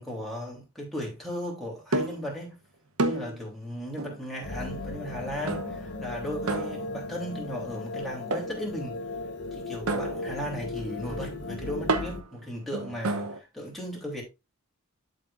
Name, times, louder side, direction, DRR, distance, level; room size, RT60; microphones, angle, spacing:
voice 1, 0.0-2.5 3.0-9.0 9.5-14.2, equal, ahead, 3.2 m, -36 dB
sound 1, 1.9-2.3 3.0-3.4 4.0-4.3 5.5-6.0 6.5-7.2 8.3-8.6 9.9-13.4, right 2 dB, 70° right, 1.0 m, -31 dB
sound 2, 4.4-12.2, left 2 dB, 55° left, 1.1 m, -37 dB
11.5 x 5.2 x 2.5 m
head